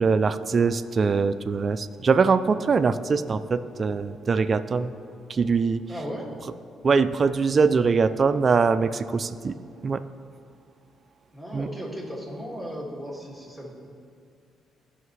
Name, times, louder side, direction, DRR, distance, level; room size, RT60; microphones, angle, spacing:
voice 1, 0.0-4.9 5.3-5.8 6.8-9.6 9.8-10.0 11.5-11.7, right 5 dB, 40° right, 11 dB, 0.3 m, -22 dB
voice 2, 5.9-6.4 11.3-13.7, equal, 10° left, -3 dB, 2.1 m, -36 dB
15.0 x 5.7 x 3.2 m, 2.3 s
cardioid pair, 90°, 0 cm